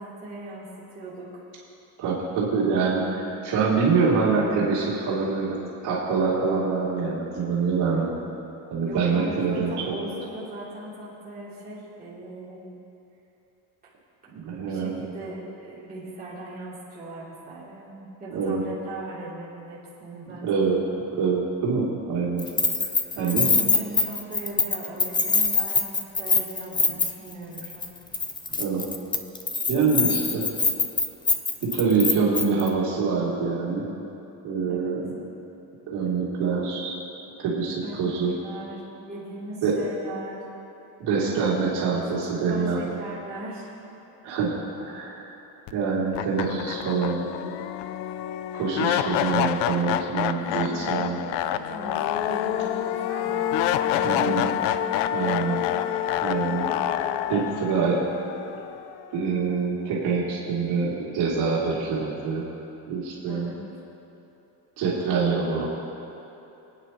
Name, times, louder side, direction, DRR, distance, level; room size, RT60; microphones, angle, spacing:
voice 1, 0.0-1.4 8.8-12.7 14.2-20.6 23.1-27.9 30.0-30.2 34.7-35.0 37.8-40.4 41.5-41.6 41.9-43.7 44.2-44.3 50.2-54.5 63.2-63.6, right 2 dB, 20° right, -10 dB, 3.4 m, -39 dB
voice 2, 2.0-5.6 5.8-8.1 8.7-9.7 14.3-15.0 18.3-18.6 20.3-20.8 21.2-22.5 23.2-23.5 26.9-27.0 28.5-28.8 29.7-30.4 31.6-33.9 34.4-35.1 35.9-36.9 37.4-38.3 39.6-39.8 41.0-42.9 44.2-45.2 45.7-47.3 48.5-51.2 54.0-54.5 55.1-55.6 56.2-56.8 57.3-58.0 59.1-62.4 62.9-63.5 64.8-65.7, right 5 dB, 70° right, -6 dB, 3.0 m, -25 dB
Keys jangling, 22.4-27.3 27.6-27.9 28.1-32.7, left 4 dB, 10° left, 0.3 m, -24 dB
sound 1, 45.7-45.8 46.1-59.2, left 11 dB, 85° left, 0.6 m, -27 dB
26.0 x 9.3 x 3.1 m, 2.9 s
cardioid pair, 175°, 42 cm